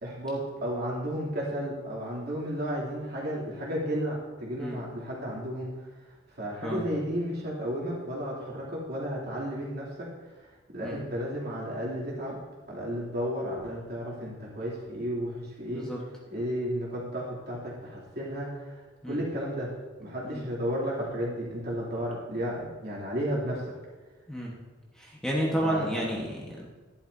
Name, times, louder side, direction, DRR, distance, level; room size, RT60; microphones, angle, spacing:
voice 1, 0.0-5.7 6.4-10.1 10.7-12.4 12.7-15.9 16.3-18.8 19.1-19.7 20.0-23.7 25.6-26.0, equal, 55° right, -5 dB, 2.7 m, -33 dB
voice 2, 25.0-26.7, equal, 5° left, -3 dB, 1.2 m, -31 dB
11.5 x 11.0 x 2.7 m, 1.3 s
head